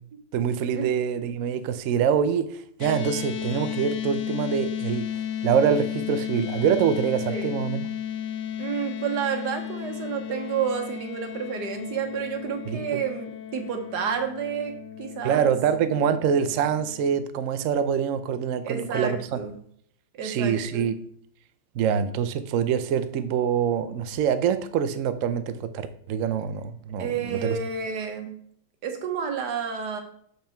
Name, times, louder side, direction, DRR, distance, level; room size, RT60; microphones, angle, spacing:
voice 1, 0.3-5.1 5.4-7.8 12.7-13.0 15.2-19.4 20.2-20.9 21.7-27.6, right 8 dB, 85° right, 0.7 m, -25 dB
sound 1, 2.8-17.2, left 9 dB, 70° left, 1.2 m, -34 dB
voice 2, 7.3-7.6 8.6-14.7 15.0-15.5 18.6-19.5 20.1-20.9 27.0-28.3 28.8-30.0, right 7 dB, 65° right, 1.6 m, -30 dB
6.5 x 5.5 x 4.4 m
omnidirectional pair, 2.0 m